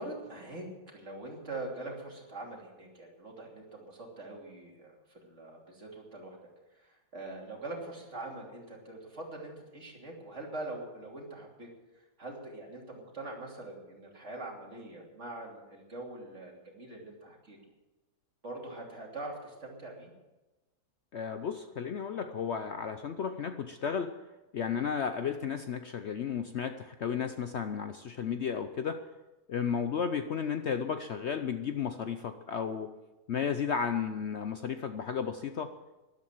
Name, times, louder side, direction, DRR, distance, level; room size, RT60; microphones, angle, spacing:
voice 1, 0.0-6.4 6.8-11.7 12.2-17.6 18.4-20.1 31.1-31.3, right 2 dB, 50° right, -1 dB, 3.4 m, -43 dB
voice 2, 21.1-24.1 24.5-29.0 29.5-32.9 33.3-35.7, left 7 dB, 55° left, 8 dB, 0.8 m, -33 dB
13.0 x 11.5 x 7.5 m, 1.1 s
omnidirectional pair, 1.6 m